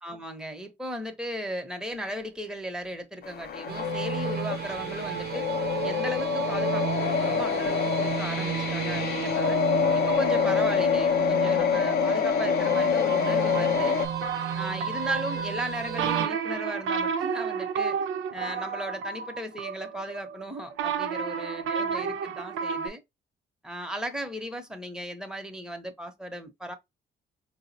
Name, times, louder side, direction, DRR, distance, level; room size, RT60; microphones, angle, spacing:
voice 1, 0.0-5.5 5.8-9.6 9.9-14.0 14.5-18.0 18.3-23.0 23.6-26.7, equal, 5° right, 0.8 m, -36 dB
sound 1, 3.2-14.1, left 7 dB, 50° left, 0.5 m, -26 dB
sound 2, 3.7-16.3, right 9 dB, 55° right, 0.7 m, -33 dB
sound 3, 14.0-22.9, right 6 dB, 90° right, 0.6 m, -31 dB
4.6 x 2.0 x 2.7 m
cardioid pair, 90°, 20 cm